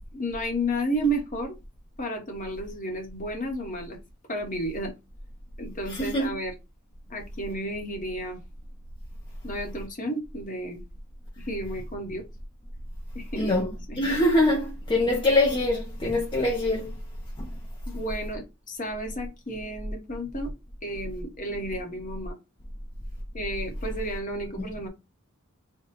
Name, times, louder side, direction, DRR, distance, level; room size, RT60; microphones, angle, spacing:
voice 1, 0.1-1.5 2.0-4.0 4.3-4.9 5.6-6.5 7.1-8.4 9.4-10.8 11.4-12.2 13.1-14.0 17.9-20.5 20.8-22.4 23.3-24.9, right 1 dB, 40° left, 1.1 m, -32 dB
voice 2, 5.9-6.3 13.4-13.7 14.0-16.9 17.4-17.5, left 1 dB, 25° left, 0.6 m, -24 dB
3.6 x 2.2 x 4.0 m
head